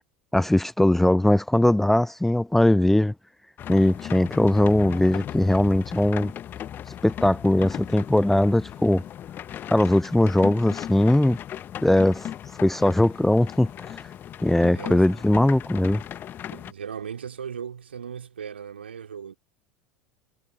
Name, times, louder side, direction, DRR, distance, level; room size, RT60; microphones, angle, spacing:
voice 1, 0.3-3.1 3.7-6.3 7.0-9.0 9.7-11.4 11.8-12.3 12.6-14.0 14.4-16.0, left 1 dB, 5° left, 0.4 m, -20 dB
sound 1, 3.6-16.7, left 10 dB, 35° left, 1.4 m, -37 dB
voice 2, 14.7-15.1 16.5-19.4, right 7 dB, 75° right, 4.0 m, -37 dB
figure-of-eight pair, 75°, 6 cm